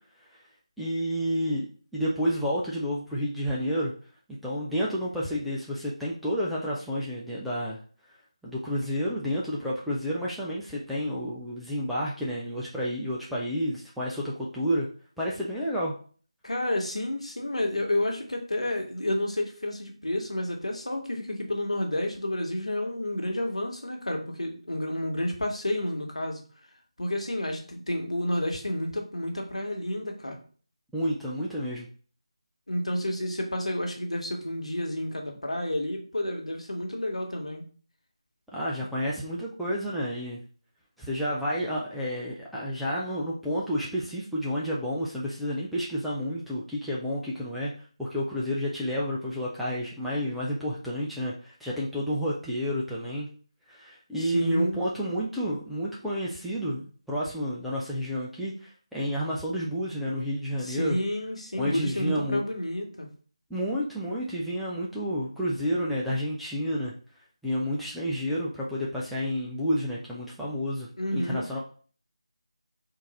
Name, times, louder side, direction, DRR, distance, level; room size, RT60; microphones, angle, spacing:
voice 1, 0.8-1.7 1.9-3.9 4.4-7.8 8.4-14.9 15.2-15.9 30.9-31.9 38.5-40.4 41.0-47.7 48.0-53.3 53.7-56.8 57.1-61.0 61.6-62.4 63.5-66.9 67.4-71.6, equal, ahead, -8 dB, 0.3 m, -30 dB
voice 2, 16.4-26.4 27.0-30.4 32.7-37.7 54.2-54.8 60.6-63.1 71.0-71.5, left 1 dB, 75° left, 2 dB, 1.2 m, -30 dB
3.8 x 2.5 x 4.1 m, 0.42 s
figure-of-eight pair, 165°, 3 cm